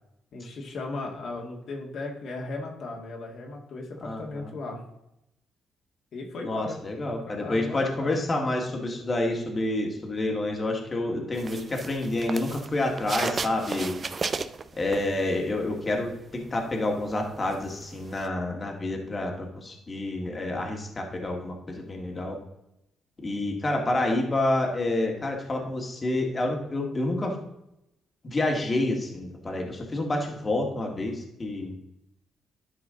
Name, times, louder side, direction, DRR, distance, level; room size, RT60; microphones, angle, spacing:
voice 1, 0.3-4.8 6.1-6.8 7.1-8.2 11.1-11.2, left 3 dB, 60° left, 0 dB, 1.8 m, -36 dB
voice 2, 4.0-4.5 6.4-13.9 14.8-22.4 23.2-27.4 28.2-31.7, left 2 dB, 30° left, 1 dB, 1.9 m, -28 dB
sound 1, 11.4-15.6 15.9-18.3, right 5 dB, 40° right, 0.5 m, -34 dB
12.0 x 4.9 x 3.8 m, 0.84 s
cardioid pair, 90°, 0 cm